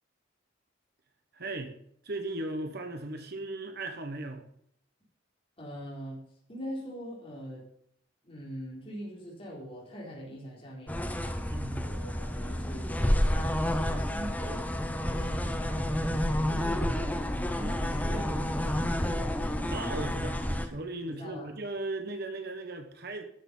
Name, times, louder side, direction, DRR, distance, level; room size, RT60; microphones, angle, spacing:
voice 1, 1.3-1.7 2.0-4.4 11.5-11.9 16.3-16.5 19.7-23.2, right 2 dB, 50° right, 5 dB, 1.3 m, -37 dB
voice 2, 5.6-6.2 6.5-7.6 8.2-11.1 11.8-14.7 15.0-17.2 17.5-19.3 21.1-21.5, equal, 30° left, -5 dB, 4.1 m, -42 dB
sound 1, 10.9-20.7, equal, 5° left, 0.8 m, -30 dB
12.5 x 6.8 x 5.5 m, 0.69 s
head